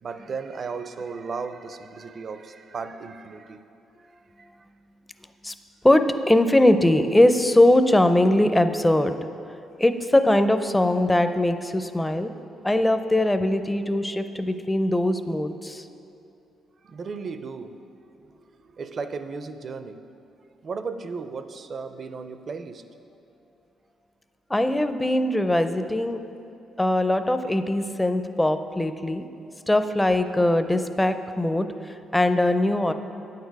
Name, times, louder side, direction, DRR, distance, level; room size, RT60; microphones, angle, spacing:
voice 1, 0.0-3.6 4.4-4.5 16.8-17.8 18.2-20.0 20.6-22.8, right 5 dB, 45° right, 10 dB, 0.4 m, -35 dB
voice 2, 5.8-9.2 9.8-12.3 12.6-15.8 24.5-26.2 26.8-29.3 29.7-31.7 32.1-32.9, left 1 dB, 10° left, 9 dB, 0.4 m, -21 dB
9.0 x 6.7 x 4.7 m, 2.7 s
cardioid pair, 90°, 0 cm